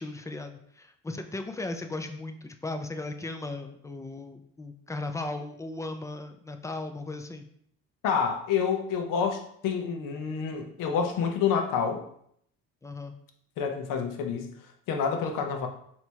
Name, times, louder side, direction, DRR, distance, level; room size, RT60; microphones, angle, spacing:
voice 1, 0.0-7.5 12.8-13.1, left 2 dB, 10° left, 7 dB, 0.3 m, -37 dB
voice 2, 8.0-12.0 13.6-14.5 14.9-15.7, left 6 dB, 75° left, 5 dB, 0.8 m, -28 dB
3.3 x 2.9 x 4.4 m, 0.68 s
cardioid pair, 105°, 32 cm